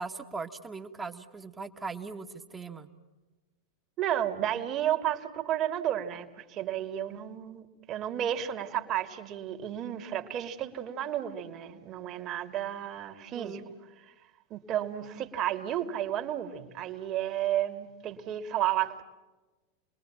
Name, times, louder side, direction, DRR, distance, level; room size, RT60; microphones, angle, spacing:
voice 1, 0.0-2.9 13.3-13.6, right 4 dB, 15° right, 4 dB, 1.8 m, -39 dB
voice 2, 4.0-13.6 14.5-19.0, right 11 dB, 35° right, 6 dB, 2.6 m, -32 dB
30.0 x 21.5 x 7.4 m, 1.2 s
figure-of-eight pair, 90°, 0 cm